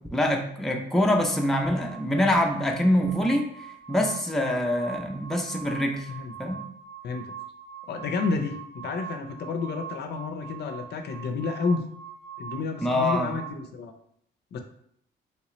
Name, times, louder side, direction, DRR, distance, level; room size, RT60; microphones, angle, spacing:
voice 1, 0.1-3.5 3.9-6.1 6.4-6.6 12.8-13.4, left 1 dB, ahead, 1 dB, 0.5 m, -24 dB
sound 1, 1.3-13.5, right 8 dB, 25° left, 0.8 m, -43 dB
voice 2, 7.9-11.9 12.4-13.9 14.5-14.6, left 4 dB, 60° left, 6 dB, 0.5 m, -30 dB
3.2 x 2.8 x 3.0 m, 0.68 s
cardioid pair, 90°, 20 cm